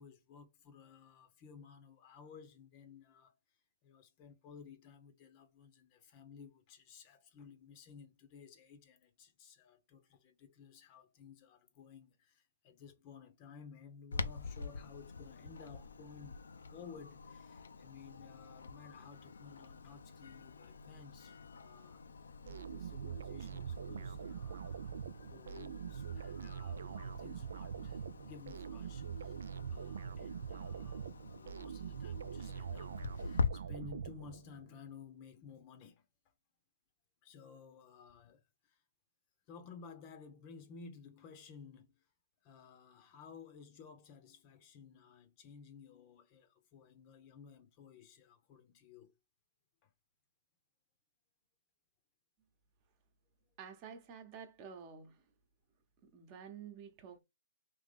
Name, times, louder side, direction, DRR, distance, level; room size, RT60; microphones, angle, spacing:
voice 1, 0.0-29.4 29.7-36.1 37.2-38.8 39.5-42.1 42.4-49.2 49.8-49.9, left 6 dB, 35° left, 0.7 m, -56 dB
Clock, 14.1-33.5, left 4 dB, 85° left, 0.5 m, -45 dB
sound 1, 22.5-34.7, right 7 dB, 70° right, 0.3 m, -44 dB
voice 2, 53.6-55.1 56.1-57.2, right 7 dB, 30° right, 1.0 m, -50 dB
3.5 x 3.0 x 3.6 m
hypercardioid pair, 145°, 0 cm